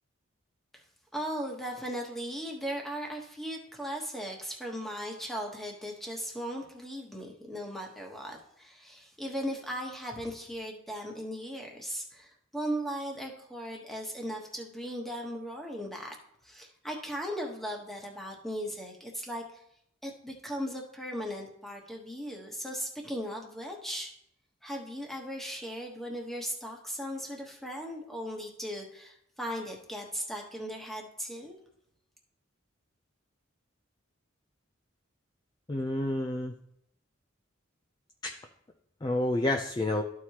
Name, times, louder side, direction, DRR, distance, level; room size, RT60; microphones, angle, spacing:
voice 1, 1.1-16.2 16.4-19.6 20.0-24.1 24.6-31.6, equal, ahead, 0 dB, 1.1 m, -37 dB
voice 2, 35.7-36.5 38.2-38.4 39.0-40.0, left 1 dB, 20° left, 4 dB, 0.4 m, -29 dB
13.0 x 4.7 x 2.9 m, 0.74 s
head